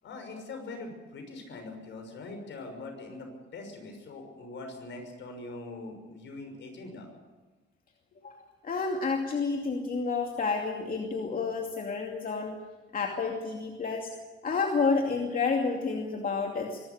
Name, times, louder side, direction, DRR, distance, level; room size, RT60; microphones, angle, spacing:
voice 1, 0.0-7.1, left 2 dB, 70° left, 4 dB, 6.2 m, -42 dB
voice 2, 8.6-12.6 12.9-14.1 14.4-16.8, left 4 dB, 45° left, 1 dB, 2.6 m, -30 dB
23.5 x 12.5 x 10.0 m, 1.3 s
cardioid pair, 90°, 20 cm